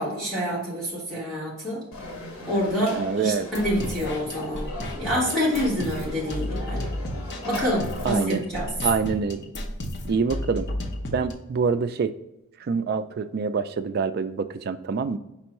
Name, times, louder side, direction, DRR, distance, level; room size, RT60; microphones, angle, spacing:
voice 1, 0.0-1.9 2.5-6.9 7.4-8.8, equal, ahead, -9 dB, 1.5 m, -27 dB
Conversation / Crowd, 1.9-8.1, left 2 dB, 85° left, 1.1 m, -38 dB
voice 2, 2.9-3.5 8.0-8.4 8.8-9.4 10.1-10.7 11.1-12.1 12.6-15.2, right 5 dB, 45° right, 11 dB, 0.3 m, -26 dB
sound 1, 3.5-11.3, left 1 dB, 50° left, 0.8 m, -33 dB
5.3 x 3.4 x 2.9 m, 0.91 s
head